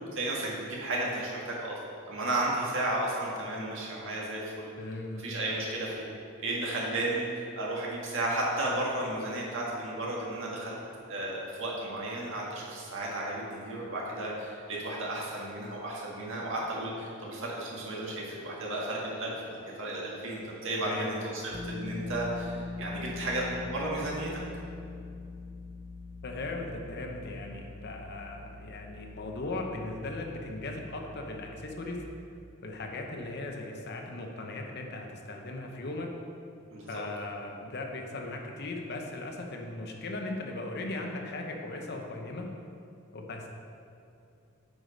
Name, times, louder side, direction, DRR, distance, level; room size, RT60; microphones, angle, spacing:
voice 1, 0.0-1.7 2.1-4.7 5.2-6.1 6.4-10.8 11.1-24.3 36.7-37.0, right 1 dB, 65° right, -4 dB, 1.8 m, -33 dB
voice 2, 4.8-5.4 20.8-21.3 26.2-32.0 32.6-36.1 36.9-42.5 43.1-43.5, left 2 dB, 50° left, 2 dB, 0.8 m, -38 dB
sound 1, 21.5-32.0, left 3 dB, 25° left, 0.4 m, -42 dB
8.0 x 5.0 x 5.1 m, 2.5 s
head